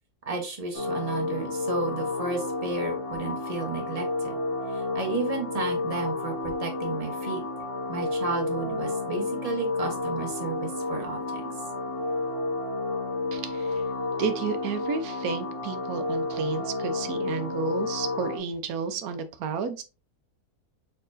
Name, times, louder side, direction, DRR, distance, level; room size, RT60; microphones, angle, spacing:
voice 1, 0.3-4.4 4.7-7.4 7.9-11.5, right 3 dB, 25° right, 2 dB, 1.0 m, -32 dB
sound 1, 0.7-18.4, left 2 dB, 50° left, 1.5 m, -31 dB
voice 2, 13.3-13.8 14.2-19.8, right 6 dB, 75° right, 9 dB, 1.1 m, -32 dB
4.4 x 4.0 x 2.6 m, 0.30 s
omnidirectional pair, 1.6 m